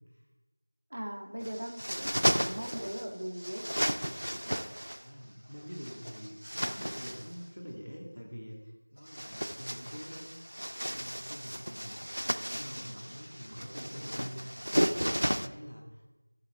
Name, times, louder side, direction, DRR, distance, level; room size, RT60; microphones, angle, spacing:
voice 1, 0.9-3.6, equal, 15° right, 2 dB, 0.4 m, -39 dB
sound 1, 1.4-3.1 3.4-5.0 5.7-7.3 9.0-15.5, equal, 75° right, 0.4 m, -34 dB
voice 2, 5.0-10.3 10.9-12.1 12.5-14.4 14.8-16.1, equal, 85° left, -1 dB, 1.7 m, -45 dB
13.0 x 7.3 x 2.4 m, 1.1 s
figure-of-eight pair, 180°, 0 cm